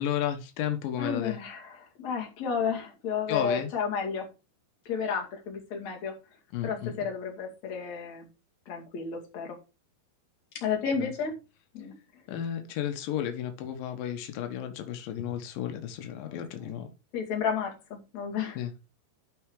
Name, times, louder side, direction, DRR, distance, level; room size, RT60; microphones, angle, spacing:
voice 1, 0.0-1.4 3.3-3.7 6.5-6.9 11.0-11.1 12.3-16.9 18.6-18.7, left 10 dB, 90° left, 1.9 m, -33 dB
voice 2, 1.0-4.3 4.8-6.1 6.6-8.3 8.7-9.6 10.5-11.3 11.7-11.9 16.2-16.7 17.1-18.6, left 6 dB, 45° left, 3.0 m, -32 dB
12.5 x 4.6 x 4.7 m
omnidirectional pair, 5.6 m